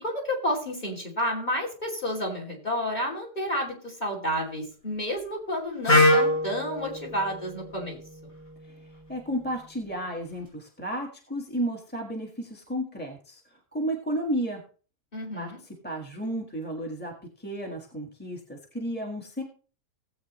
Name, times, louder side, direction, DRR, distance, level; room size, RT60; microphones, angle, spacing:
voice 1, 0.0-8.0 15.1-15.6, equal, 25° left, 1 dB, 3.0 m, -30 dB
Wind instrument woodwind instrument, 5.9-9.7, left 1 dB, 50° left, 6.8 m, -26 dB
voice 2, 8.6-14.6 15.4-15.5 15.8-17.1 17.4-19.4, right 1 dB, 5° left, 0 dB, 1.4 m, -33 dB
17.5 x 8.0 x 3.1 m, 0.40 s
omnidirectional pair, 1.7 m